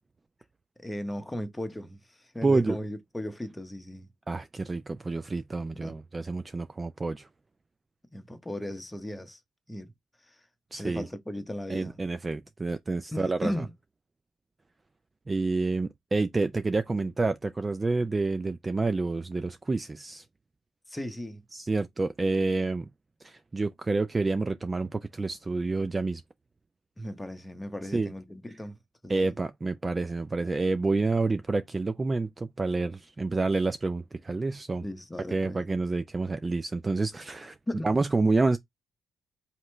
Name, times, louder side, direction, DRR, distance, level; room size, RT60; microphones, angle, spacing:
voice 1, 0.8-2.0 2.3-4.1 5.7-6.0 8.1-9.4 9.7-9.9 10.3-10.4 10.8-12.0 13.1-13.7 20.9-21.4 27.0-28.8 29.0-29.3 34.8-35.6 37.7-38.0, left 1 dB, 10° left, 0.9 m, -36 dB
voice 2, 2.4-2.8 4.3-7.3 10.7-11.1 11.7-13.5 15.3-20.2 21.5-22.9 23.2-26.2 27.9-28.1 29.1-34.9 35.3-37.6 37.8-38.6, right 3 dB, 25° right, 0.3 m, -28 dB
4.3 x 2.9 x 3.2 m
cardioid pair, 90°, 0 cm